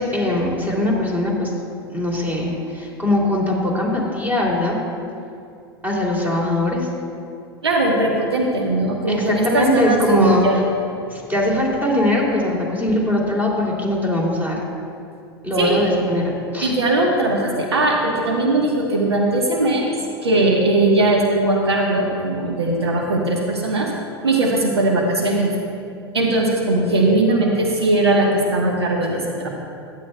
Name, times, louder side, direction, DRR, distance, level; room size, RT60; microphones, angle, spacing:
voice 1, 0.0-1.5 1.9-4.8 5.8-6.9 9.1-10.5 11.1-14.6 15.4-16.7, left 1 dB, 15° right, -2 dB, 2.8 m, -21 dB
voice 2, 7.6-10.6 15.6-15.8 16.6-19.9 20.2-23.9 24.2-25.5 26.1-29.5, right 2 dB, 85° right, 0 dB, 1.2 m, -19 dB
16.0 x 10.5 x 2.2 m, 2.4 s
hypercardioid pair, 85°, 13 cm